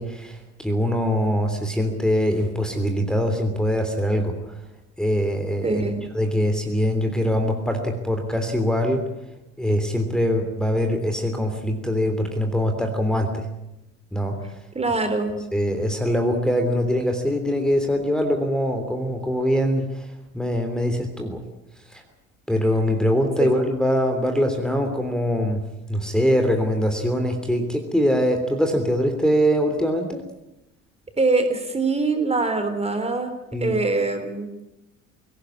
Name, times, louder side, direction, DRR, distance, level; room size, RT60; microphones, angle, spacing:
voice 1, 0.0-4.6 5.0-5.9 6.1-9.0 9.6-13.4 14.1-14.5 15.5-20.1 20.3-21.4 21.9-22.0 22.5-25.6 25.9-30.2 33.5-33.7, equal, ahead, 3 dB, 3.3 m, -23 dB
voice 2, 5.6-6.1 14.8-15.4 31.2-33.3 33.6-34.5, right 3 dB, 15° right, 7 dB, 3.6 m, -23 dB
25.0 x 18.0 x 8.8 m, 0.91 s
figure-of-eight pair, 65°, 39 cm